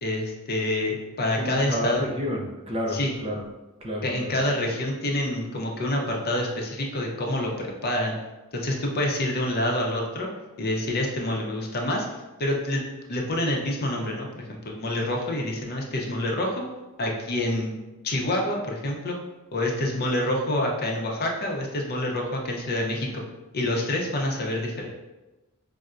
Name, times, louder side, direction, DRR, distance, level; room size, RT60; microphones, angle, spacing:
voice 1, 0.0-2.0 2.9-3.1 4.0-8.2 8.5-10.3 10.6-12.1 12.4-12.8 13.1-16.6 17.0-17.7 18.0-19.2 19.5-23.2 23.5-24.9, left 1 dB, 45° left, -1 dB, 0.6 m, -27 dB
voice 2, 1.3-3.4 3.8-4.4, equal, 25° right, -2 dB, 0.5 m, -30 dB
5.4 x 2.0 x 2.4 m, 1.1 s
head